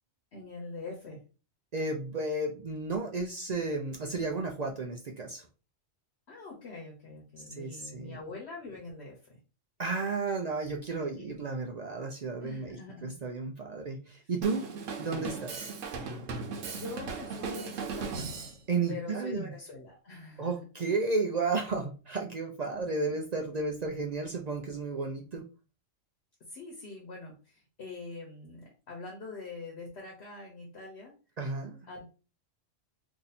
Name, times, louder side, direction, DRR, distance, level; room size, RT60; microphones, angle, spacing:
voice 1, 0.3-1.2 6.3-9.4 11.1-11.4 12.4-13.2 16.7-18.3 18.9-20.6 22.7-23.2 26.4-31.1 31.9-32.0, left 3 dB, 60° left, -1 dB, 1.1 m, -44 dB
voice 2, 1.7-5.5 7.6-8.2 9.8-14.7 15.0-15.8 18.7-19.5 20.4-25.4 31.4-31.8, right 3 dB, 65° right, 2 dB, 0.4 m, -33 dB
Drum kit, 14.4-18.6, right 4 dB, 90° right, 1.1 m, -37 dB
2.8 x 2.7 x 4.0 m, 0.34 s
omnidirectional pair, 1.3 m